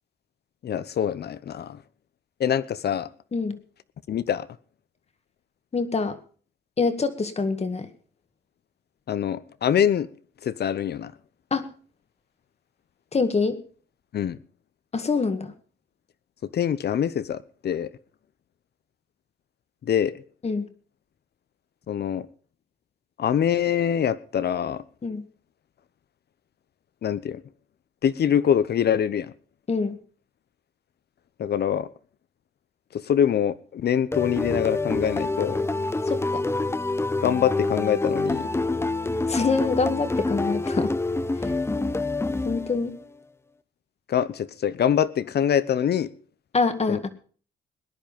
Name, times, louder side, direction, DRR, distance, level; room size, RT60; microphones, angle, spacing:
voice 1, 0.6-1.8 2.4-3.1 4.1-4.5 9.1-10.1 10.4-11.1 14.1-14.4 16.5-17.9 19.8-20.1 21.9-22.3 23.2-24.8 27.0-27.4 28.0-29.3 31.4-31.9 32.9-35.7 37.2-38.5 44.1-46.1 46.9-47.0, left 9 dB, 55° left, 0.9 m, -24 dB
voice 2, 5.7-6.2 6.8-7.9 11.5-11.7 13.1-13.6 14.9-15.5 20.4-20.7 25.0-25.3 29.7-30.0 36.1-36.4 39.3-40.9 42.5-43.0 46.5-47.1, left 4 dB, 30° left, 1.9 m, -25 dB
sound 1, 34.1-43.0, left 2 dB, 10° left, 0.8 m, -27 dB
19.5 x 10.5 x 5.3 m
cardioid pair, 90°, 20 cm